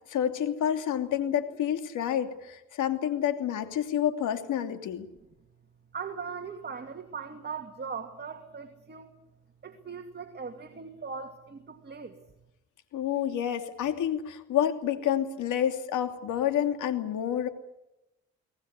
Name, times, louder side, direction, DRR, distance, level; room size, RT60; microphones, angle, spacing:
voice 1, 0.1-5.1 12.9-17.5, left 10 dB, 80° left, 7 dB, 2.9 m, -29 dB
voice 2, 5.9-9.1 9.6-12.2, right 5 dB, 35° right, 5 dB, 2.4 m, -39 dB
23.5 x 18.0 x 9.7 m, 0.94 s
cardioid pair, 90°, 30 cm